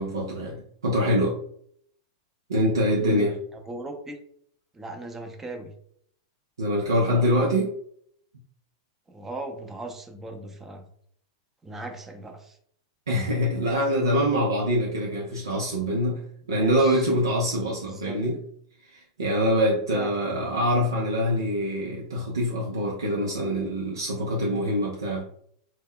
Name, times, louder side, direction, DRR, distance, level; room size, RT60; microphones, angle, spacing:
voice 1, 0.0-1.4 2.5-3.3 6.6-7.7 13.1-16.2 16.5-18.4 18.9-25.2, equal, 90° right, -3 dB, 0.5 m, -24 dB
voice 2, 3.0-4.2 4.7-5.7 7.0-7.5 9.1-10.9 11.6-12.6 16.5-17.1 17.9-18.2 19.9-20.1, right 2 dB, 15° right, 3 dB, 0.6 m, -38 dB
2.1 x 2.1 x 3.6 m, 0.66 s
hypercardioid pair, 105°, 2 cm